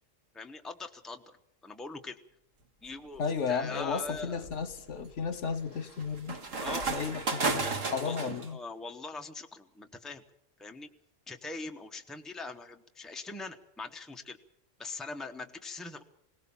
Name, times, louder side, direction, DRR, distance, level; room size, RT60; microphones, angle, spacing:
voice 1, 0.3-1.4 1.6-2.2 2.8-3.2 3.5-4.4 6.5-7.2 7.6-10.2 10.6-10.9 11.3-14.4 14.8-16.0, left 3 dB, ahead, 5 dB, 0.9 m, -42 dB
sound 1, 2.9-3.3 3.9-8.5, right 4 dB, 90° right, 2.2 m, -34 dB
voice 2, 3.2-6.4 6.9-8.6, left 5 dB, 70° left, 13 dB, 1.4 m, -34 dB
21.5 x 18.0 x 7.1 m, 0.74 s
omnidirectional pair, 1.3 m